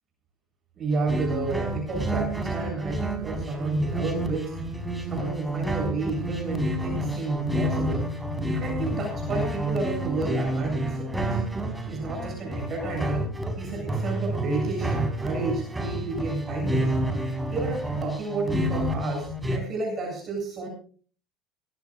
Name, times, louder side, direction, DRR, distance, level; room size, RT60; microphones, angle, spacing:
voice 1, 0.8-4.5 5.0-8.1 8.5-11.4 11.9-13.3 13.6-16.9 17.5-20.7, right 3 dB, 35° right, 1 dB, 7.9 m, -31 dB
sound 1, 1.1-19.6, right 1 dB, 10° right, 4.5 m, -29 dB
22.5 x 16.5 x 2.5 m, 0.42 s
supercardioid pair, 105°, 0 cm